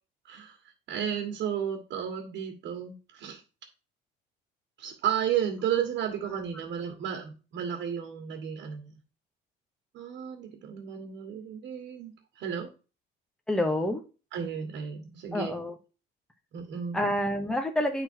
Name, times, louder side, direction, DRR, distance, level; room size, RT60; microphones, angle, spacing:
voice 1, 0.2-0.6 0.9-3.4 4.8-8.9 9.9-12.7 14.3-15.6 16.5-17.0, right 8 dB, 65° right, 3 dB, 1.6 m, -33 dB
voice 2, 13.5-14.0 15.3-15.7 16.9-18.0, left 1 dB, 5° left, 4 dB, 1.1 m, -28 dB
10.5 x 4.0 x 4.5 m, 0.33 s
cardioid pair, 125°, 20 cm